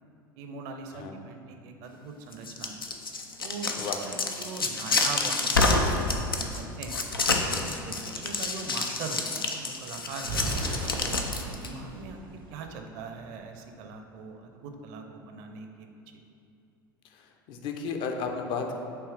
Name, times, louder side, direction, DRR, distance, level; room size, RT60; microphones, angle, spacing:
voice 1, 0.4-2.8 3.4-3.7 4.0-7.0 7.5-10.6 11.0-12.2 12.5-15.9, right 4 dB, 55° right, 5 dB, 0.6 m, -41 dB
sound 1, 2.3-11.7, left 3 dB, 85° left, 0.5 m, -28 dB
voice 2, 3.8-4.2 17.0-18.8, left 5 dB, 45° left, 4 dB, 0.6 m, -34 dB
sound 2, 10.2-13.1, right 2 dB, 85° right, 0.9 m, -36 dB
7.0 x 3.0 x 4.8 m, 2.6 s
figure-of-eight pair, 75°, 11 cm